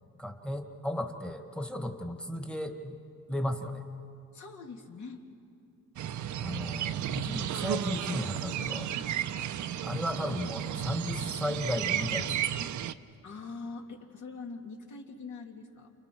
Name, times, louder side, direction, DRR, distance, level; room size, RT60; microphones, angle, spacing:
voice 1, 0.2-3.0 3.3-3.8 6.4-8.9 9.8-12.5, left 1 dB, 5° left, 5 dB, 1.5 m, -35 dB
voice 2, 4.3-5.2 13.2-15.9, left 4 dB, 65° left, 1 dB, 2.6 m, -43 dB
sound 1, 6.0-12.9, right 10 dB, 65° right, 0.7 m, -33 dB
30.0 x 29.5 x 4.6 m, 2.5 s
cardioid pair, 145°, 31 cm